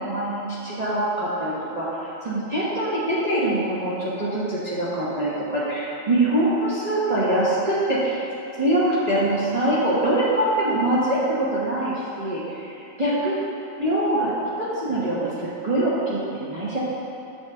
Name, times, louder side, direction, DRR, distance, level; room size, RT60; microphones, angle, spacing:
voice 1, 0.0-8.2 8.6-13.4 13.7-14.3 14.6-16.8, right 1 dB, 35° right, -10 dB, 1.2 m, -24 dB
7.2 x 4.2 x 6.8 m, 2.9 s
omnidirectional pair, 1.2 m